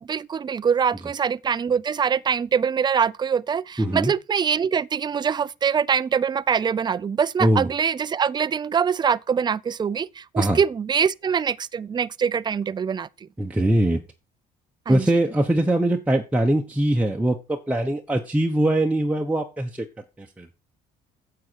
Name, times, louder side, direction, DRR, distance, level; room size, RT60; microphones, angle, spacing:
voice 1, 0.0-13.1 14.9-15.1, right 7 dB, 25° right, 0.5 m, -24 dB
voice 2, 3.8-4.1 7.4-7.7 10.4-10.6 13.4-14.0 14.9-19.8 20.2-20.5, right 1 dB, 10° right, 1.1 m, -22 dB
9.3 x 7.8 x 4.6 m
cardioid pair, 110°, 17 cm